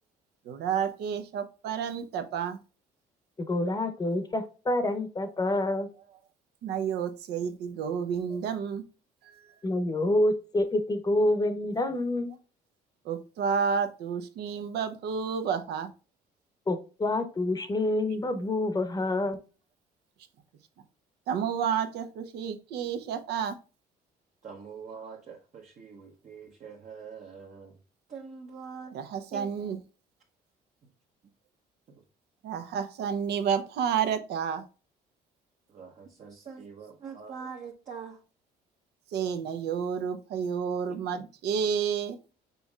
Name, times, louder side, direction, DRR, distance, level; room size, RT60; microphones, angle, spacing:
voice 1, 0.5-2.6 6.6-8.8 13.0-15.9 21.3-23.6 28.9-29.8 32.4-34.6 39.1-42.2, right 7 dB, 75° right, 0.8 m, -30 dB
voice 2, 3.5-5.9 9.6-12.3 16.7-19.4, left 1 dB, 20° left, 0.8 m, -27 dB
voice 3, 24.4-27.8 28.1-29.0 29.3-29.5 31.9-32.0 35.7-38.2 40.9-41.2, right 6 dB, 45° right, 1.0 m, -44 dB
5.5 x 4.1 x 2.3 m
cardioid pair, 110°, 17 cm